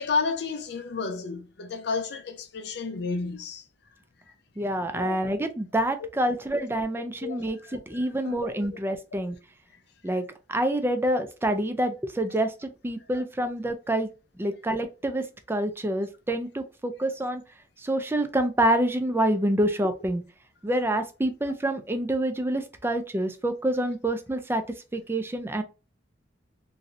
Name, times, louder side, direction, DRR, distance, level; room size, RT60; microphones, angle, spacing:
voice 1, 0.0-3.6 4.9-5.2 6.0-6.1 6.5-6.6 7.2-8.0 8.2-8.7 13.1-13.2, left 4 dB, 65° left, 0.5 m, -32 dB
voice 2, 4.6-9.4 10.0-14.1 14.4-17.4 17.8-20.2 20.6-24.6 24.9-25.6, right 1 dB, 15° right, 0.4 m, -27 dB
3.1 x 2.7 x 2.5 m
head